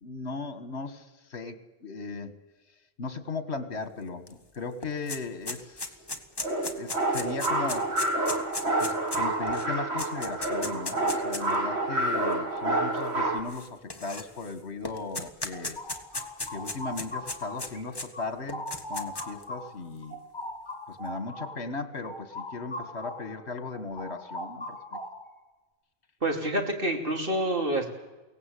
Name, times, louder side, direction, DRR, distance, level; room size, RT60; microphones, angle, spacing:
voice 1, 0.0-2.3 3.0-6.0 6.8-7.9 8.8-15.8 16.5-20.2 20.9-25.0, left 4 dB, 75° left, 11 dB, 1.9 m, -37 dB
sound 1, 4.3-4.4 4.6-11.5 12.3-12.4 13.5-14.5 14.8-18.1 18.5-19.4, left 2 dB, 20° left, 1.5 m, -36 dB
sound 2, 6.4-13.4, right 2 dB, 75° right, 2.9 m, -28 dB
sound 3, 15.3-17.8 18.1-23.3 23.7-25.4, left 1 dB, 45° left, 3.6 m, -40 dB
voice 2, 26.2-27.9, right 1 dB, 55° right, 3 dB, 3.3 m, -27 dB
23.0 x 17.5 x 8.4 m, 1.1 s
omnidirectional pair, 1.1 m